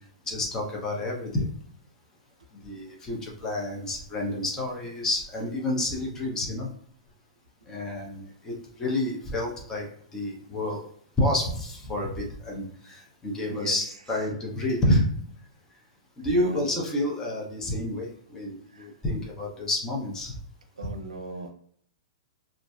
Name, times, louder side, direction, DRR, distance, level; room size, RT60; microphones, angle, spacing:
voice 1, 0.3-1.5 2.6-6.7 7.7-9.9 10.1-10.8 11.2-15.1 16.2-20.3, left 1 dB, 15° left, -2 dB, 0.7 m, -29 dB
voice 2, 13.5-13.9 16.3-16.7 18.7-18.9 20.8-21.5, right 2 dB, 90° right, 5 dB, 0.5 m, -39 dB
2.5 x 2.1 x 2.3 m, 0.63 s
hypercardioid pair, 120°, 3 cm